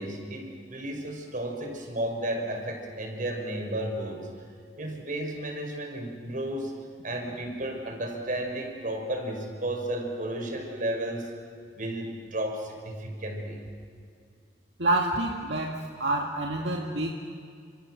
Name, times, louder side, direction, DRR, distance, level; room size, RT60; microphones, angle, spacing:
voice 1, 0.0-4.3 4.8-6.7 7.0-11.3 11.7-13.6, right 1 dB, 50° right, 3 dB, 5.6 m, -33 dB
voice 2, 14.8-17.1, right 2 dB, 75° right, 0 dB, 2.1 m, -27 dB
29.5 x 27.5 x 6.5 m, 2.2 s
head